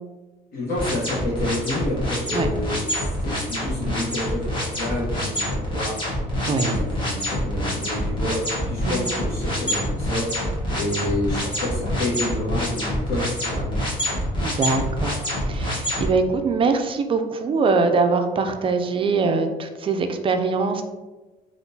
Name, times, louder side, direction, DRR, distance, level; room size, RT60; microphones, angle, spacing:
voice 1, 0.5-6.1 6.4-10.4 10.7-13.8, left 1 dB, 60° left, -7 dB, 0.9 m, -29 dB
sound 1, 0.8-16.1, equal, 30° left, 1.1 m, -26 dB
voice 2, 14.4-20.8, right 4 dB, 30° right, 6 dB, 0.4 m, -23 dB
3.5 x 2.4 x 2.7 m, 1.2 s
cardioid pair, 110°, 17 cm